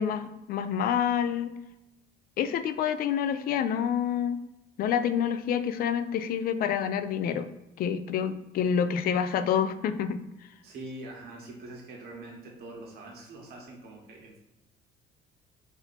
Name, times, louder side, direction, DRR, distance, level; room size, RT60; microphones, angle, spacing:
voice 1, 0.0-1.5 2.4-4.4 4.8-7.5 7.8-10.2, left 8 dB, 60° left, 10 dB, 0.4 m, -27 dB
voice 2, 10.6-14.4, right 2 dB, 70° right, 0 dB, 1.3 m, -44 dB
4.3 x 2.7 x 4.2 m, 0.93 s
cardioid pair, 110°, 17 cm